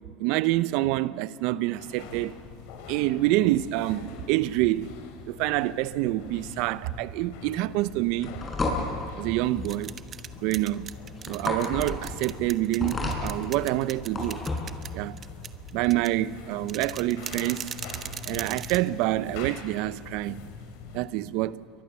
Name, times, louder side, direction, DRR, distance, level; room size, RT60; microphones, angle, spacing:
voice 1, 0.2-2.4 2.9-4.9 5.3-8.3 9.2-9.9 10.4-10.9 11.3-14.4 14.9-15.2 15.7-17.7 18.3-20.4 20.9-21.6, right 16 dB, 70° right, 0.7 m, -27 dB
sound 1, 1.8-21.0, left 6 dB, 75° left, 3.5 m, -45 dB
sound 2, 7.9-14.8, left 2 dB, 25° left, 6.7 m, -32 dB
sound 3, 9.4-19.8, right 8 dB, 35° right, 1.1 m, -41 dB
28.5 x 23.0 x 7.0 m
supercardioid pair, 95°, 0 cm